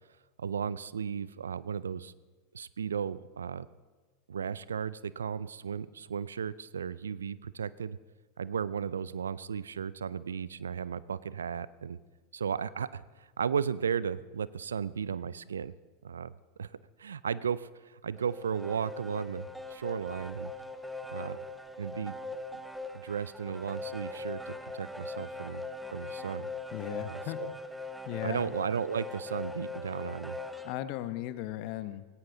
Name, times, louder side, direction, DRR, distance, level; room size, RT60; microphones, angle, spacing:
voice 1, 0.4-2.1 2.5-3.7 4.3-8.0 8.4-12.0 12.3-15.7 16.0-16.3 16.6-16.7 17.0-20.5 21.1-21.4 21.8-22.2 22.9-25.6 25.9-26.5 27.0-27.5 28.2-30.4, right 7 dB, 80° right, 19 dB, 0.4 m, -35 dB
sound 1, 18.2-30.8, left 2 dB, 5° right, 0.7 m, -41 dB
voice 2, 26.7-27.4 28.0-28.5 30.6-32.1, left 14 dB, 55° left, 13 dB, 0.9 m, -37 dB
17.5 x 17.0 x 3.9 m, 1.4 s
figure-of-eight pair, 85°, 0 cm